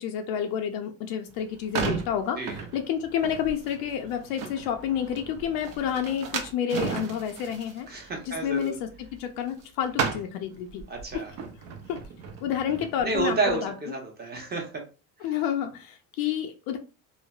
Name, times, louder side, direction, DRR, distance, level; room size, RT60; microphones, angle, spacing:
voice 1, 0.0-7.9 8.3-10.8 11.1-11.2 11.9-12.0 12.4-13.7 15.2-16.8, left 9 dB, 80° left, 5 dB, 0.5 m, -29 dB
sound 1, 1.3-9.6 9.9-13.6, right 6 dB, 55° right, 0.7 m, -35 dB
voice 2, 7.9-8.7 10.9-11.3 13.0-14.8, right 3 dB, 25° right, 2 dB, 0.9 m, -30 dB
3.1 x 2.0 x 2.4 m, 0.33 s
supercardioid pair, 110°, 39 cm